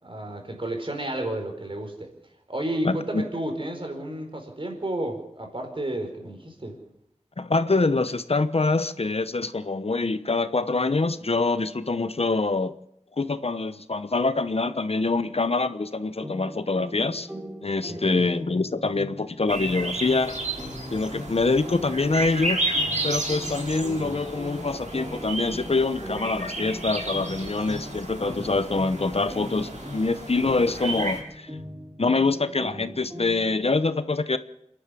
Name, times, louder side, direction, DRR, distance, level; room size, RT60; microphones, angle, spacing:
voice 1, 0.0-2.1 2.5-6.8 17.9-18.3, right 1 dB, 45° right, 4.9 m, -32 dB
voice 2, 2.8-3.2 7.4-12.7 13.2-17.3 17.6-20.4 20.9-22.6 23.0-31.5 32.0-34.4, left 3 dB, 55° left, 0.9 m, -25 dB
sound 1, 16.2-33.6, left 1 dB, 10° right, 4.2 m, -40 dB
sound 2, 19.5-31.2, right 2 dB, 85° right, 4.8 m, -32 dB
27.0 x 11.0 x 8.5 m
wide cardioid pair, 50°, 12 cm